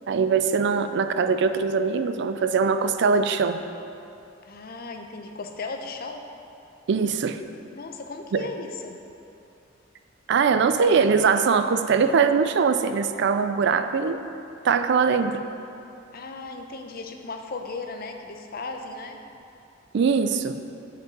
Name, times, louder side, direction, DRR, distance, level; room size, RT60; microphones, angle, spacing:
voice 1, 0.1-3.6 6.9-7.4 8.3-8.5 10.3-14.2 14.6-15.4 19.9-20.6, right 5 dB, 60° right, 9 dB, 0.4 m, -22 dB
voice 2, 4.4-6.2 7.7-9.0 16.1-19.2, left 3 dB, 50° left, 4 dB, 0.6 m, -36 dB
8.0 x 5.2 x 5.3 m, 2.7 s
head